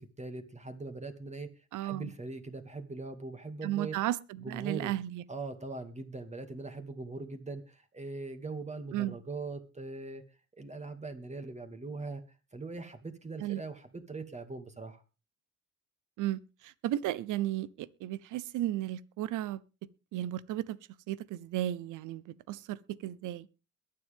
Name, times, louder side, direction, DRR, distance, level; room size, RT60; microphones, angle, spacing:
voice 1, 0.0-1.5 1.8-4.0 4.4-5.0 5.3-10.2 10.5-12.2 12.5-15.0, right 3 dB, 25° right, 2.3 m, -41 dB
voice 2, 1.7-2.1 3.6-5.2 8.9-9.1 13.4-13.6 16.2-19.6 20.1-20.8 21.1-23.5, right 14 dB, 90° right, 0.8 m, -34 dB
22.0 x 7.7 x 3.6 m
cardioid pair, 90°, 30 cm